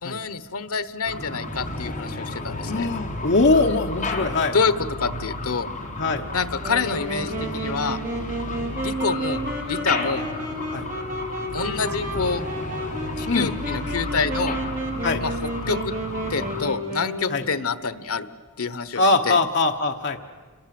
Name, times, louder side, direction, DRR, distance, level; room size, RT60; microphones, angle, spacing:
voice 1, 0.0-2.9 4.5-5.7 6.3-8.0 8.8-9.4 9.7-10.2 11.5-12.4 13.2-14.6 15.2-15.9 16.3-18.3 18.6-19.4, left 5 dB, 80° left, 13 dB, 1.1 m, -27 dB
sound 1, 1.0-16.7, left 2 dB, 35° left, 3.8 m, -32 dB
voice 2, 2.6-4.5 6.0-6.2 10.7-10.9 13.3-13.5 15.0-15.2 17.3-17.4 19.0-20.2, left 3 dB, 55° left, 3 dB, 1.1 m, -21 dB
Wind instrument woodwind instrument, 6.6-17.5, right 1 dB, 35° right, 4.4 m, -31 dB
28.5 x 22.5 x 7.7 m, 1.5 s
head